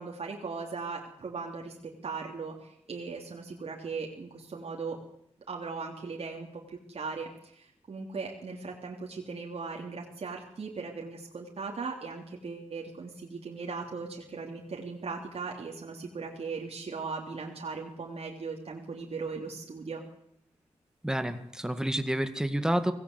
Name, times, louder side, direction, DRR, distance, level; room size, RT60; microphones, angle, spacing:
voice 1, 0.0-5.0 5.5-20.0, right 4 dB, 55° right, 0 dB, 3.5 m, -38 dB
voice 2, 21.0-22.9, right 1 dB, 5° right, 10 dB, 1.9 m, -29 dB
25.0 x 18.0 x 8.2 m, 0.71 s
wide cardioid pair, 170°, 12 cm